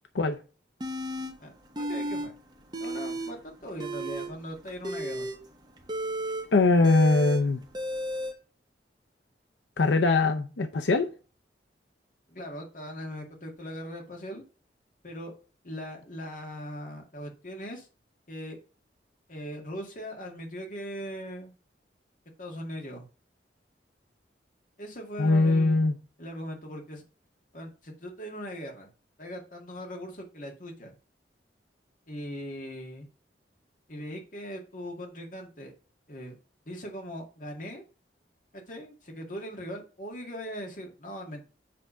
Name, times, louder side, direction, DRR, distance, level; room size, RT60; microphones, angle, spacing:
sound 1, 0.8-1.3 1.7-2.3 2.6-3.3 3.7-8.3, right 1 dB, 25° right, 1.3 m, -33 dB
voice 1, 1.4-2.3 2.8-5.3 12.3-14.4 15.0-15.3 15.6-17.9 18.3-18.6 19.3-21.5 22.4-23.1 24.8-25.8 26.2-27.0 27.5-28.9 29.2-30.9 32.1-33.1 33.9-35.7 36.1-36.4 36.7-37.8 38.5-41.5, equal, 45° left, 1.9 m, -40 dB
voice 2, 6.5-7.6 9.8-11.1 25.2-25.9, left 3 dB, 90° left, 0.6 m, -22 dB
7.7 x 3.5 x 5.5 m
head